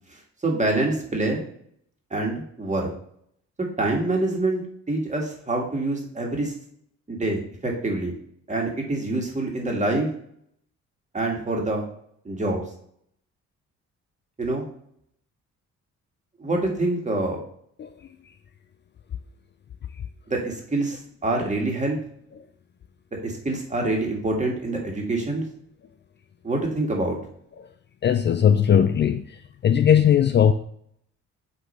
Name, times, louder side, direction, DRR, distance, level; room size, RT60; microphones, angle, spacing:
voice 1, 0.4-1.4 2.1-2.9 3.6-6.5 7.1-8.2 8.5-10.1 11.1-11.8 12.2-12.6 14.4-14.6 16.4-17.4 20.3-22.0 23.2-25.4 26.4-27.2, right 2 dB, 25° right, 1.8 m, -26 dB
voice 2, 28.0-29.2 29.6-30.5, left 8 dB, 40° left, 0.4 m, -18 dB
8.3 x 3.1 x 4.2 m
cardioid pair, 90°, 30 cm